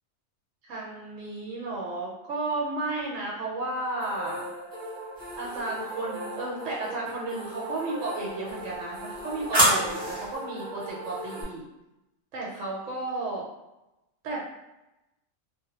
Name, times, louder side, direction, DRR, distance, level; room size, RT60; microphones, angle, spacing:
voice 1, 0.7-4.5 5.4-11.6 12.3-13.5 14.2-14.5, right 2 dB, 75° right, -4 dB, 0.9 m, -33 dB
sound 1, 4.0-11.4, right 1 dB, 10° left, 0.3 m, -38 dB
sound 2, 5.2-5.9 8.3-10.4, right 1 dB, 20° right, 0.8 m, -28 dB
2.1 x 2.1 x 2.8 m, 0.95 s
omnidirectional pair, 1.4 m